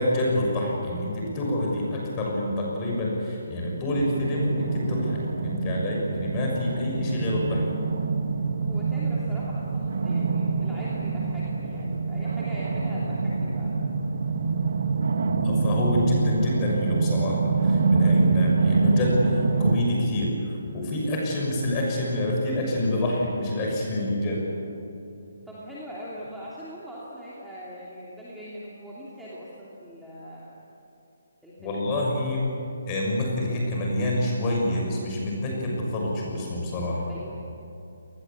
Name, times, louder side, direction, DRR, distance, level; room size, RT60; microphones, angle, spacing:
voice 1, 0.0-7.7 15.4-24.4 31.6-32.5 32.9-37.1, left 1 dB, 20° left, -2 dB, 6.4 m, -27 dB
sound 1, 3.9-19.8, right 4 dB, 65° right, 2.1 m, -25 dB
voice 2, 8.6-13.8 25.5-30.6 31.4-31.9 37.0-37.4, equal, ahead, -9 dB, 2.9 m, -41 dB
28.0 x 20.0 x 8.7 m, 2.8 s
hypercardioid pair, 170°, 0 cm